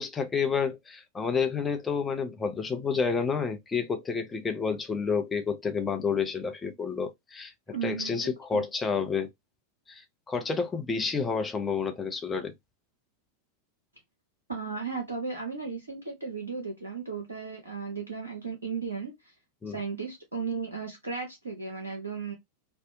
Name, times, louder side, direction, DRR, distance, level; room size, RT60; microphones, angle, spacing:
voice 1, 0.0-7.5 7.8-9.3 9.9-12.5 19.6-19.8, left 5 dB, 15° left, 0.5 m, -29 dB
voice 2, 7.7-8.6 14.5-19.1 19.7-22.3, right 5 dB, 75° right, 0.7 m, -35 dB
2.7 x 2.1 x 2.5 m
figure-of-eight pair, 90°, 0 cm